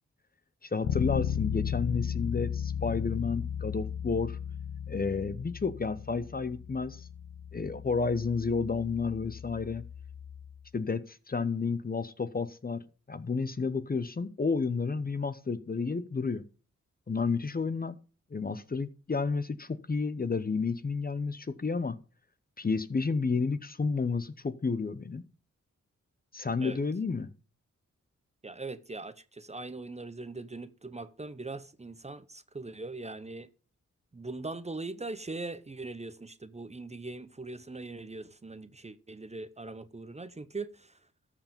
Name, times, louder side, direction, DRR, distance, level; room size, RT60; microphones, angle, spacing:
voice 1, 0.6-4.4 4.9-7.1 7.5-9.8 10.7-12.8 13.1-16.4 17.1-18.0 18.3-22.0 22.6-25.2 26.3-27.3, left 4 dB, 30° left, 0.7 m, -31 dB
Bass guitar, 0.8-10.6, left 8 dB, 70° left, 0.7 m, -36 dB
voice 2, 28.4-33.5 34.1-40.9, right 3 dB, 20° right, 0.8 m, -41 dB
13.5 x 4.9 x 5.2 m
cardioid pair, 55°, 29 cm